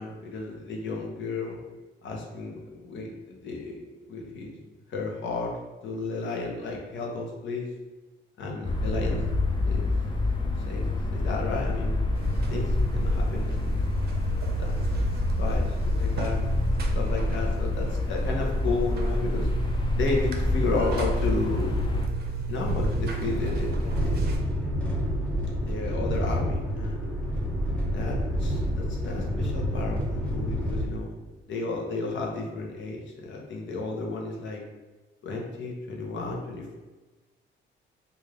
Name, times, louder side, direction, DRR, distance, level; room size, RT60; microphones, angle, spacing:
voice 1, 0.0-1.6 2.0-3.8 4.1-4.5 4.9-5.5 5.8-7.7 8.4-9.3 9.7-9.9 10.7-12.0 12.5-13.8 14.6-16.5 16.9-19.5 19.9-21.9 22.5-24.3 24.6-24.7 25.7-27.0 27.9-31.2 31.5-34.6 35.2-36.8, left 3 dB, 70° left, -1 dB, 0.9 m, -33 dB
sound 1, 8.6-22.1, left 2 dB, 25° left, 0.5 m, -27 dB
Buzz, 12.1-24.4, right 2 dB, 55° right, 0.6 m, -32 dB
sound 2, 22.6-30.9, equal, 5° left, 0.8 m, -28 dB
3.2 x 2.6 x 3.6 m, 1.2 s
cardioid pair, 90°, 20 cm